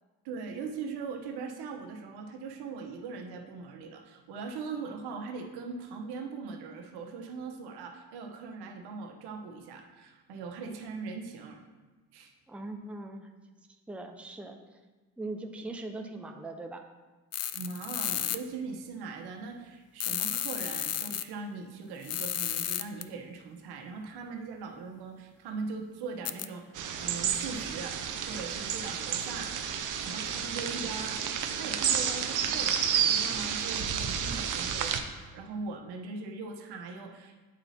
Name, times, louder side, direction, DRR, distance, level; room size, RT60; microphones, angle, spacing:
voice 1, 0.2-11.6 12.1-12.3 17.5-29.7 30.0-31.2 31.5-37.3, right 4 dB, 75° right, 3 dB, 1.0 m, -40 dB
voice 2, 12.5-13.3 13.9-14.8 15.2-16.9, right 2 dB, 5° right, 4 dB, 0.6 m, -40 dB
sound 1, 17.3-18.4 20.0-21.2 22.0-23.0 26.3-26.5, left 11 dB, 40° left, 0.4 m, -32 dB
sound 2, 26.8-35.0, right 8 dB, 50° right, 0.8 m, -31 dB
8.9 x 4.2 x 4.1 m, 1.3 s
supercardioid pair, 80°, 39 cm